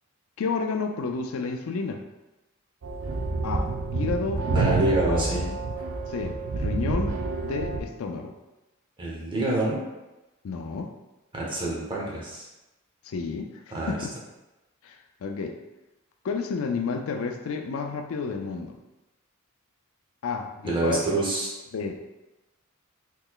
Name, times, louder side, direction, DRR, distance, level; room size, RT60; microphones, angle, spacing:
voice 1, 0.4-2.0 3.4-4.8 5.1-5.6 6.1-7.2 7.4-8.3 10.4-10.9 13.0-13.5 13.9-14.1 14.8-15.6 16.2-18.8 20.2-21.2 21.7-22.0, left 4 dB, 75° left, 4 dB, 0.4 m, -31 dB
sound 1, 2.8-7.8, right 3 dB, 75° right, 0.4 m, -28 dB
voice 2, 4.5-5.4 9.0-9.8 11.3-12.5 13.7-13.9 20.6-21.5, right 2 dB, 25° right, -4 dB, 0.8 m, -27 dB
3.8 x 3.1 x 2.3 m, 1.0 s
head